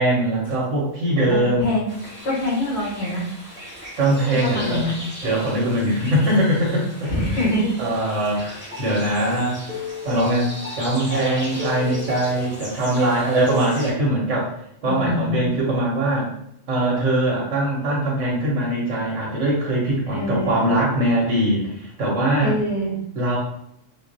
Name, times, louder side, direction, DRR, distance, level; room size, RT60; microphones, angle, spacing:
voice 1, 0.0-1.7 4.0-4.8 5.2-7.1 7.8-9.6 10.0-10.5 10.8-14.5 14.8-16.3 16.7-22.5 23.1-23.4, right 1 dB, 75° right, -4 dB, 1.2 m, -21 dB
voice 2, 1.3-1.9 2.2-3.3 4.3-5.0 7.0-7.7 8.3-8.5 14.8-15.4 20.1-20.6 22.4-23.0, left 1 dB, 65° left, -6 dB, 1.6 m, -25 dB
sound 1, 1.9-13.9, left 2 dB, 10° right, 0.9 m, -34 dB
3.8 x 2.3 x 2.6 m, 0.73 s
omnidirectional pair, 1.2 m